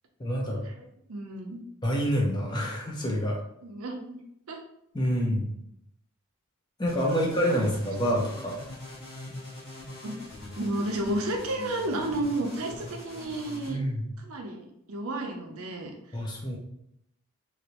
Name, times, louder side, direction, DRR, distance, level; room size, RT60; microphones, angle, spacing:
voice 1, 0.2-0.6 1.8-3.4 4.9-5.5 6.8-8.6 13.7-14.1 16.1-16.6, equal, 20° left, -2 dB, 0.5 m, -27 dB
voice 2, 1.1-1.6 3.6-4.2 4.5-4.6 7.1-7.7 10.0-10.2 10.6-13.8 14.2-15.9, right 1 dB, 75° right, 2 dB, 0.6 m, -32 dB
sound 1, 6.9-13.7, left 2 dB, 45° left, 1.3 m, -42 dB
3.1 x 2.5 x 2.9 m, 0.76 s
head